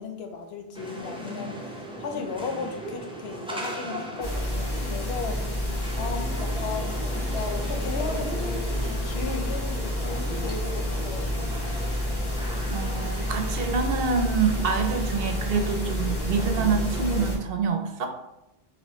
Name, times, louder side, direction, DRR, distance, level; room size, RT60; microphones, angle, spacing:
voice 1, 0.0-11.4, left 4 dB, 80° left, 5 dB, 0.8 m, -36 dB
sound 1, 0.7-17.3, right 1 dB, 10° right, 0.4 m, -37 dB
sound 2, 4.2-17.4, left 1 dB, 25° left, 0.9 m, -29 dB
voice 2, 12.7-18.1, right 5 dB, 70° right, 5 dB, 0.8 m, -26 dB
4.3 x 2.9 x 3.0 m, 0.90 s
omnidirectional pair, 1.1 m